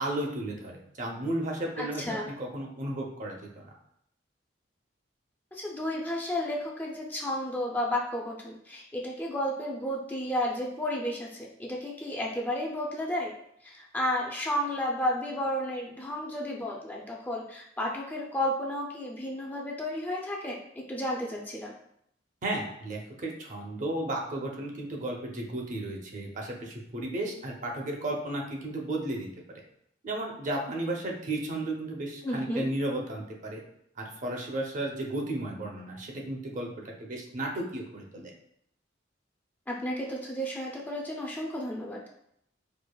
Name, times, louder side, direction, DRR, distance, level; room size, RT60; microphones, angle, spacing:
voice 1, 0.0-3.7 22.4-29.6 30.0-33.6 34.0-38.3, right 1 dB, 45° right, 0 dB, 0.6 m, -34 dB
voice 2, 1.8-2.3 5.5-13.3 13.6-20.6 20.9-21.7 32.2-32.6 39.7-42.0, left 1 dB, 10° left, -2 dB, 0.4 m, -32 dB
4.6 x 2.4 x 2.2 m, 0.73 s
head